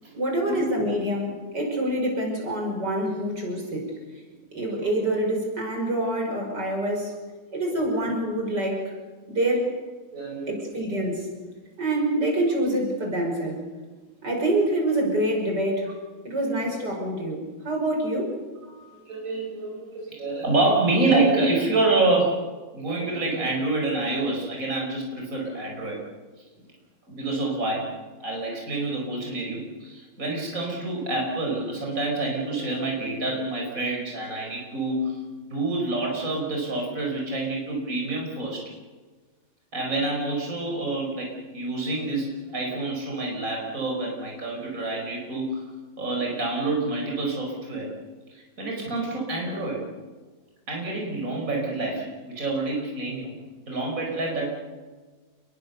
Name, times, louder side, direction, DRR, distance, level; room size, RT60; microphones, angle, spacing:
voice 1, 0.2-4.2 4.5-7.1 7.5-8.9 9.3-9.7 10.5-11.3 11.8-13.6 14.2-15.9 16.2-18.4, right 1 dB, 70° right, 1 dB, 6.3 m, -26 dB
voice 2, 10.1-10.6 18.6-22.4 22.7-26.0 27.1-27.9 28.2-35.2 35.5-38.7 39.7-45.7 46.0-47.9 48.3-49.9 50.7-53.3 53.7-54.5, right 2 dB, 50° right, -1 dB, 5.5 m, -27 dB
29.5 x 22.0 x 6.9 m, 1.4 s
omnidirectional pair, 1.9 m